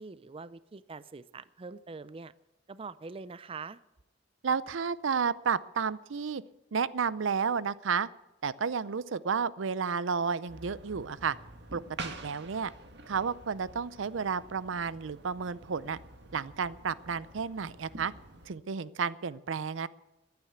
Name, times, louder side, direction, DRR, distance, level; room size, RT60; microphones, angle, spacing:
voice 1, 0.0-2.3 2.7-3.8, right 4 dB, 30° right, 16 dB, 0.4 m, -44 dB
voice 2, 4.4-6.4 6.7-8.1 8.4-11.4 11.7-12.7 13.1-16.0 16.3-18.1 18.5-19.9, right 6 dB, 85° right, 18 dB, 0.6 m, -32 dB
sound 1, 10.5-18.5, right 2 dB, 60° right, 1.7 m, -47 dB
15.0 x 10.5 x 8.1 m, 0.99 s
head